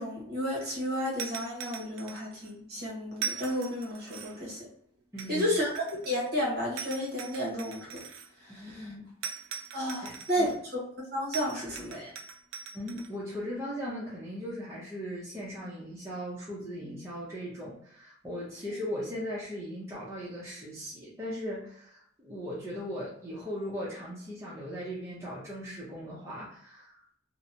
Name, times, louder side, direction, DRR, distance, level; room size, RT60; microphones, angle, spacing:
voice 1, 0.0-4.7 5.3-8.0 8.5-8.9 9.7-10.5 11.1-12.1, equal, 50° right, -3 dB, 1.0 m, -32 dB
sound 1, 1.2-2.5 3.2-4.5 5.2-6.3 6.8-8.3 9.2-10.6 11.3-13.1, right 6 dB, 85° right, 0.4 m, -41 dB
voice 2, 5.1-5.4 8.5-9.1 10.0-10.5 12.7-27.0, equal, 15° right, -7 dB, 0.5 m, -38 dB
2.7 x 2.0 x 2.6 m, 0.66 s
head